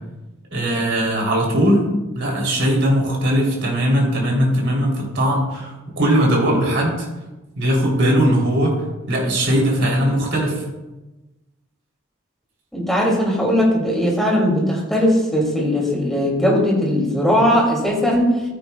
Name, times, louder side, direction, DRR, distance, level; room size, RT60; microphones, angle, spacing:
voice 1, 0.5-1.9 2.1-7.1 7.6-8.7 9.1-10.6, equal, 55° right, -1 dB, 3.2 m, -19 dB
voice 2, 12.7-18.4, equal, ahead, -3 dB, 2.5 m, -18 dB
13.5 x 9.2 x 2.3 m, 1.1 s
head